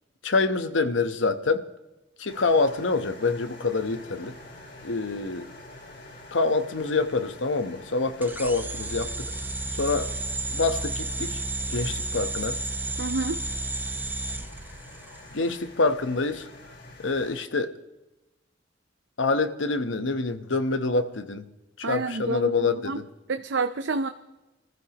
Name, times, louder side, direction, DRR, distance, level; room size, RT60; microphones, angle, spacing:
voice 1, 0.2-1.7 2.2-4.4 4.8-5.5 6.3-9.3 9.7-10.1 10.5-11.4 11.7-12.6 15.3-16.5 17.0-17.7 19.2-21.5 21.8-23.0, left 3 dB, 80° left, 1.0 m, -26 dB
sound 1, 2.3-17.4, left 2 dB, 60° left, 5.4 m, -47 dB
sound 2, 8.2-15.3, right 2 dB, 10° right, 0.7 m, -32 dB
voice 2, 13.0-13.4 21.8-23.0 23.3-24.1, right 3 dB, 65° right, 0.6 m, -29 dB
26.0 x 15.0 x 2.9 m
head